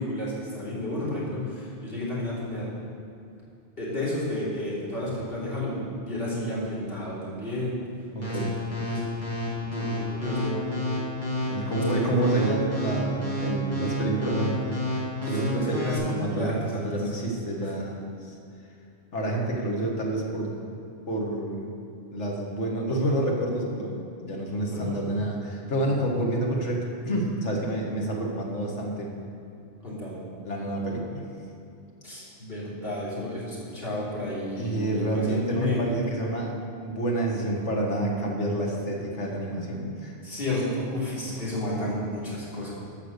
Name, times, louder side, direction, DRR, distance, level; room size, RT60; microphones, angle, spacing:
voice 1, 0.0-2.7 3.8-7.8 8.2-8.5 8.8-9.0 9.6-10.7 12.0-12.4 15.3-16.0 16.3-16.8 17.6-17.7 24.7-25.0 29.8-30.2 32.0-35.9 40.2-42.7, left 1 dB, 55° left, -8 dB, 3.4 m, -31 dB
voice 2, 8.2-8.5 11.5-18.4 19.1-20.8 21.1-21.7 22.1-29.2 30.4-31.2 34.6-40.2, right 1 dB, 90° left, 0 dB, 1.8 m, -29 dB
sound 1, 8.2-16.0, left 1 dB, 10° left, 2.7 m, -30 dB
13.5 x 5.9 x 6.6 m, 2.6 s
omnidirectional pair, 1.2 m